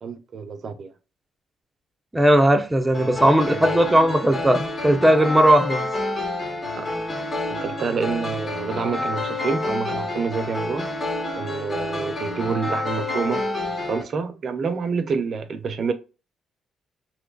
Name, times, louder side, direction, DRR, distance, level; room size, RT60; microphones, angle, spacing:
voice 1, 0.0-0.9 3.5-3.8 6.7-7.0 7.5-10.9 11.4-15.9, right 5 dB, 55° right, 0.6 m, -28 dB
voice 2, 2.1-5.9, right 1 dB, 10° right, 0.6 m, -18 dB
sound 1, 2.9-14.0, left 2 dB, 35° left, 1.2 m, -28 dB
3.0 x 2.4 x 3.8 m
cardioid pair, 90°, 0 cm